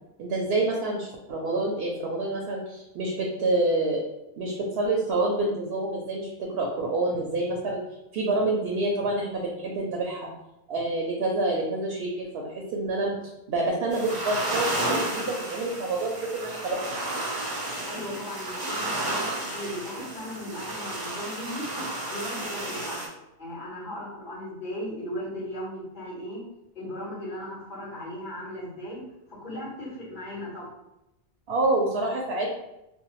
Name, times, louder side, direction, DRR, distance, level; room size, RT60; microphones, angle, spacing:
voice 1, 0.2-4.0 4.4-7.8 8.1-10.3 10.7-13.1 13.5-17.0 31.5-32.5, right 2 dB, 70° right, -1 dB, 0.7 m, -27 dB
sound 1, 13.9-23.1, right 1 dB, 30° right, 0.5 m, -32 dB
voice 2, 17.9-21.7 22.1-23.1 23.4-26.4 26.7-29.0 29.3-30.7, equal, 45° left, -8 dB, 1.4 m, -37 dB
2.8 x 2.1 x 2.9 m, 0.91 s
omnidirectional pair, 1.1 m